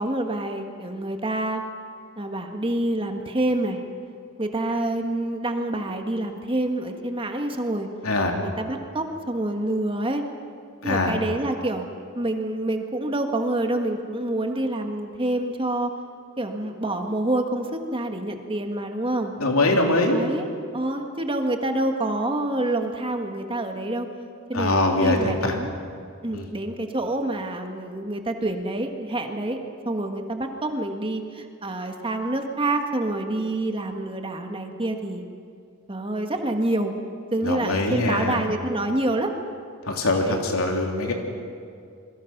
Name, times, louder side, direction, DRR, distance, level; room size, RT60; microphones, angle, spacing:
voice 1, 0.0-1.6 2.2-3.8 4.4-7.9 8.4-10.2 10.8-11.9 12.1-15.9 16.4-19.3 20.1-20.5 20.7-24.1 24.5-25.7 26.2-29.6 29.8-35.2 35.9-36.9 37.3-39.3 40.2-40.4, right 1 dB, 25° right, 4 dB, 1.7 m, -27 dB
voice 2, 8.0-8.3 10.8-11.1 19.4-20.2 24.5-25.6 26.3-26.5 37.4-38.4 39.8-41.1, left 2 dB, 85° left, 2 dB, 3.2 m, -23 dB
27.0 x 22.5 x 6.0 m, 2.3 s
head